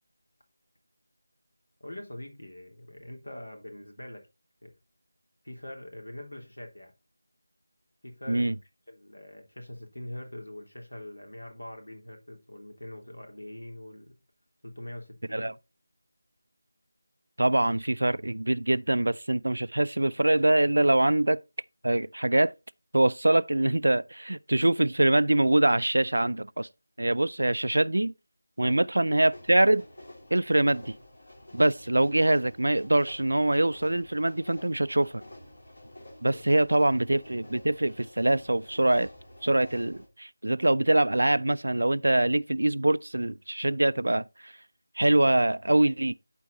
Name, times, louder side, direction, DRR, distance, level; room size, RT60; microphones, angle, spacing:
voice 1, 1.8-4.2 4.6-4.7 5.4-6.9 8.0-8.5 8.9-14.1 14.6-15.5 28.6-28.8 36.2-36.4, left 1 dB, 85° left, 3.4 m, -43 dB
voice 2, 17.4-21.4 21.8-22.5 22.9-26.7 27.0-28.1 28.6-29.8 30.3-30.9 31.5-35.2 36.2-39.1 39.4-44.5 45.0-46.1, right 1 dB, 75° right, 0.4 m, -24 dB
sound 1, 29.3-40.1, left 1 dB, 65° left, 3.5 m, -49 dB
11.5 x 4.5 x 4.0 m
figure-of-eight pair, 165°, 0 cm